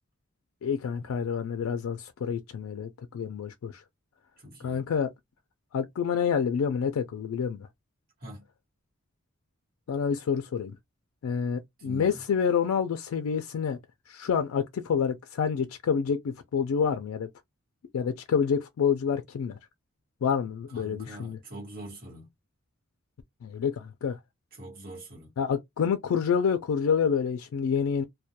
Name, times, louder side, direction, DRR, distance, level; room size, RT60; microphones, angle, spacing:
voice 1, 0.6-3.8 4.6-5.1 5.7-7.7 9.9-10.8 11.2-13.8 14.1-17.3 17.9-19.6 20.2-21.4 23.4-24.2 25.4-28.0, left 6 dB, 90° left, 0.3 m, -28 dB
voice 2, 4.4-4.8 8.2-8.5 11.8-12.2 20.7-22.3 24.5-25.3, right 1 dB, 45° right, 1.2 m, -43 dB
2.2 x 2.2 x 2.7 m
head